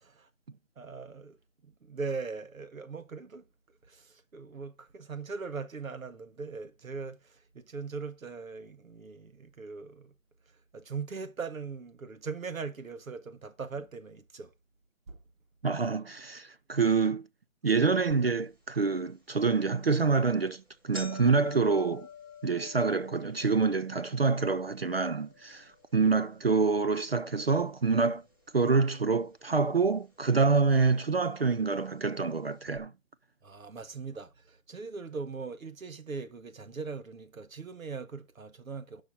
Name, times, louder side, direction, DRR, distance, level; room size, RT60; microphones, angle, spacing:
voice 1, 0.8-1.4 1.6-3.4 3.8-10.1 10.7-14.5 15.1-15.2 33.4-39.0, right 4 dB, 85° right, 1.5 m, -40 dB
voice 2, 15.6-17.3 17.6-22.1 22.4-28.2 28.5-32.9, right 4 dB, 50° right, 0.4 m, -26 dB
sound 1, 18.1-18.2 18.7-18.8 19.7-19.9 20.2-20.3 20.6-28.8 29.0-29.8 30.6-30.7 31.6-31.7 32.0-32.1 32.7-32.8, left 4 dB, 15° right, 1.1 m, -50 dB
8.5 x 5.9 x 4.1 m
hypercardioid pair, 170°, 40 cm